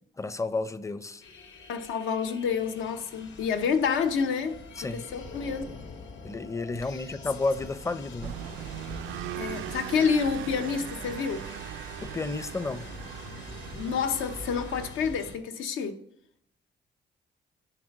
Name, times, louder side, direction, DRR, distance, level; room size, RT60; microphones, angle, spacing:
voice 1, 0.2-1.2 4.8-5.0 6.2-8.4 12.0-12.9, left 3 dB, 15° left, 0.5 m, -31 dB
sound 1, 1.2-15.3, left 3 dB, 65° left, 1.5 m, -45 dB
voice 2, 1.7-4.6 4.9-5.8 9.3-11.5 13.7-16.0, left 6 dB, 85° left, 0.8 m, -28 dB
sound 2, 8.2-14.9, right 11 dB, 90° right, 0.4 m, -39 dB
9.9 x 4.3 x 5.2 m
cardioid pair, 90°, 20 cm